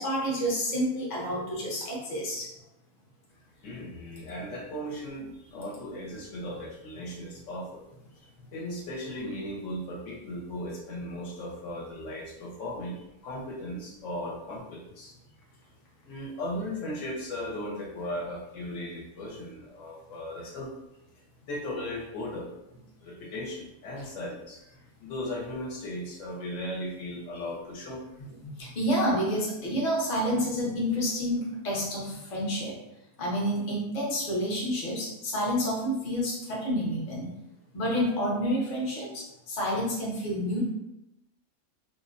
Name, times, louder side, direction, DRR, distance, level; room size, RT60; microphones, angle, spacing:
voice 1, 0.0-2.5 24.0-24.1 28.6-32.8 33.2-37.3 37.7-40.7, equal, 45° left, -3 dB, 0.6 m, -29 dB
voice 2, 3.6-7.8 8.2-15.1 16.0-20.7 21.4-22.5 23.0-24.7 25.0-28.0, left 1 dB, 65° left, -3 dB, 0.9 m, -37 dB
2.5 x 2.0 x 2.5 m, 0.86 s
omnidirectional pair, 1.5 m